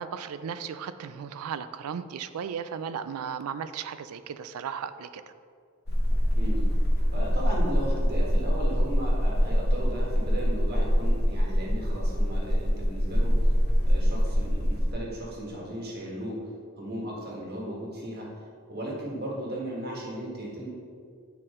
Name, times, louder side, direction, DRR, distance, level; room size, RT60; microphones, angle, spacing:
voice 1, 0.0-5.2, right 7 dB, 90° right, 13 dB, 0.3 m, -35 dB
sound 1, 5.9-14.9, equal, 45° left, 1.0 m, -24 dB
voice 2, 7.0-13.6 13.8-16.5 16.8-20.7, right 1 dB, 45° right, -3 dB, 1.5 m, -36 dB
8.3 x 4.3 x 3.7 m, 2.2 s
head